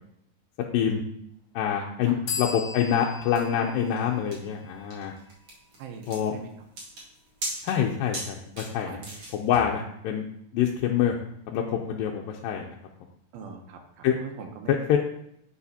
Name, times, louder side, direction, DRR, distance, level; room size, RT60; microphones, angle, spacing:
voice 1, 1.6-5.1 6.1-6.3 7.6-9.0 9.3-10.2 10.5-11.2 11.5-12.8 14.0-14.2 14.7-15.0, left 9 dB, 80° left, 0 dB, 2.2 m, -26 dB
voice 2, 2.1-2.6 5.8-6.5 8.8-9.1 9.6-9.8 13.3-14.8, right 6 dB, 85° right, 4 dB, 2.7 m, -42 dB
sound 1, 2.3-5.8, left 6 dB, 60° left, 2.0 m, -38 dB
sound 2, 3.4-9.6, right 1 dB, 45° right, 1.9 m, -39 dB
10.5 x 5.0 x 2.8 m, 0.74 s
omnidirectional pair, 4.2 m